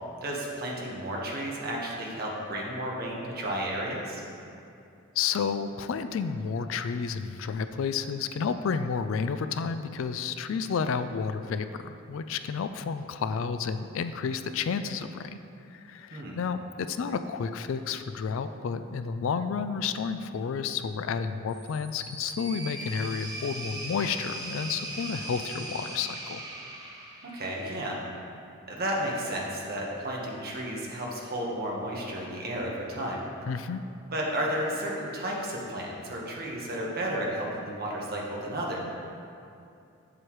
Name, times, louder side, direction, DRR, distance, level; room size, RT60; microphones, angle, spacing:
voice 1, 0.2-4.2 16.1-16.4 27.2-28.0 28.7-33.2 34.1-38.8, right 1 dB, 45° right, -3 dB, 1.2 m, -32 dB
voice 2, 5.2-15.4 15.7-26.4 33.5-33.8, left 6 dB, 65° left, 10 dB, 0.3 m, -31 dB
sound 1, 21.5-27.7, right 2 dB, 20° right, 0.8 m, -39 dB
8.2 x 7.5 x 3.1 m, 2.6 s
head